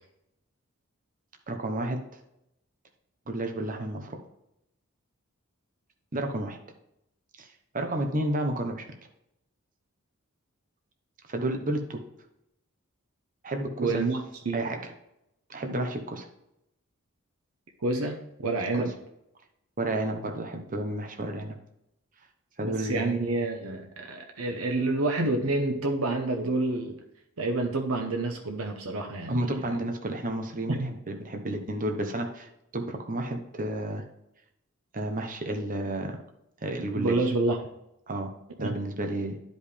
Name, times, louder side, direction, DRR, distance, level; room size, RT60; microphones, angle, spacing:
voice 1, 1.5-2.0 3.3-4.2 6.1-6.6 7.4-7.5 7.7-8.9 11.3-12.0 13.4-14.0 14.5-14.9 15.5-16.3 18.8-18.9 19.8-21.6 22.6-23.2 29.3-34.0 34.9-36.2 36.6-37.2 38.1-38.3 38.6-39.4, right 1 dB, 40° right, 5 dB, 0.9 m, -31 dB
voice 2, 13.8-14.6 17.8-18.9 22.6-27.0 27.4-29.8 30.7-30.9 37.0-37.7 38.6-38.7, right 2 dB, 80° right, 4 dB, 0.9 m, -28 dB
10.5 x 5.3 x 3.3 m, 0.83 s
head